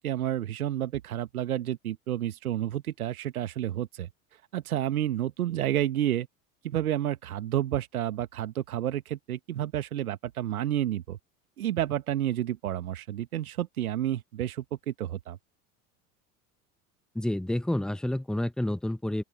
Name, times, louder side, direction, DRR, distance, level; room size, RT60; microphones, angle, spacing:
voice 1, 0.0-6.3 6.6-11.2 11.6-15.4, right 12 dB, 80° right, 1.2 m, -30 dB
voice 2, 17.1-19.2, left 1 dB, ahead, 1.0 m, -29 dB
open air
hypercardioid pair, 75°, 42 cm